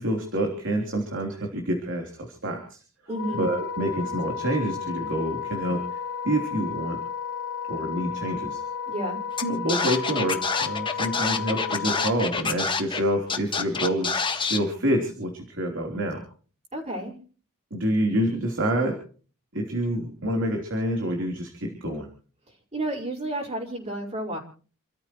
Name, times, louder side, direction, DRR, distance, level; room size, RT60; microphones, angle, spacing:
voice 1, 0.0-2.8 3.4-5.8 6.2-7.0 7.7-8.6 9.4-16.2 17.7-19.0 19.5-22.1, right 1 dB, 60° right, 2 dB, 3.5 m, -27 dB
Wind instrument woodwind instrument, 3.1-12.1, left 7 dB, 65° left, 1.0 m, -33 dB
voice 2, 3.1-3.5 8.9-9.2 16.7-17.1 22.7-24.4, right 1 dB, 30° right, -1 dB, 5.2 m, -31 dB
Scratching (performance technique), 9.4-9.5 9.7-13.0 13.3-14.6, left 5 dB, 25° left, 1.7 m, -27 dB
29.5 x 14.0 x 3.2 m, 0.40 s
head